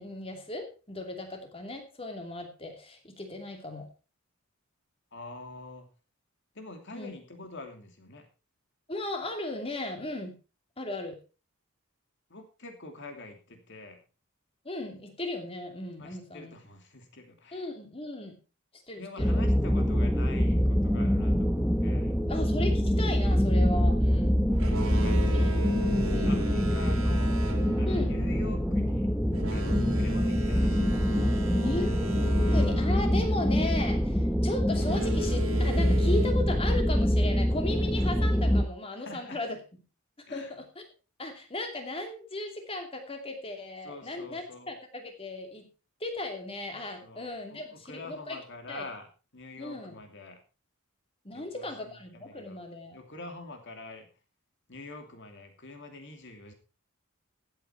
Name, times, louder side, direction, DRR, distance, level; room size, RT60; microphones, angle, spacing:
voice 1, 0.0-3.9 6.9-7.1 8.9-10.3 10.8-11.2 14.6-16.5 17.5-18.4 18.9-19.4 22.3-24.3 25.3-25.5 26.1-26.4 27.9-28.2 31.6-32.0 32.3-39.6 40.3-40.8 41.2-45.7 46.0-48.4 48.7-48.8 49.6-50.0 51.2-53.0, left 2 dB, 25° left, 4 dB, 2.7 m, -36 dB
voice 2, 5.1-5.8 6.5-8.3 12.3-14.0 16.0-17.6 19.0-22.2 24.7-25.5 26.2-27.4 27.8-29.1 29.5-31.6 39.0-39.4 40.3-40.5 43.8-44.7 47.0-49.1 49.3-50.4 51.3-52.6 52.9-54.1 54.7-56.5, left 2 dB, 55° left, 5 dB, 2.8 m, -45 dB
sound 1, 19.2-38.6, equal, ahead, 0.9 m, -25 dB
Boat Water vehicle, 24.5-33.9 34.7-36.3, right 1 dB, 70° right, 2.6 m, -39 dB
15.0 x 8.4 x 4.4 m, 0.33 s
head